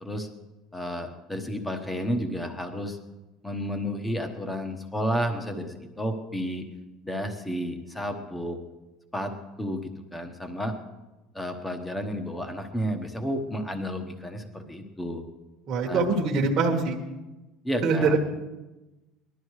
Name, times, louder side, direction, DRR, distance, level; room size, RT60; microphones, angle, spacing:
voice 1, 0.7-3.0 3.4-6.6 7.0-8.6 9.1-10.7 11.3-15.2 15.9-16.0 17.6-18.2, equal, 5° left, 6 dB, 1.1 m, -31 dB
voice 2, 15.7-17.0 17.8-18.2, right 4 dB, 30° right, -2 dB, 1.4 m, -23 dB
19.5 x 12.0 x 4.8 m, 1.1 s
cardioid pair, 180°, 0 cm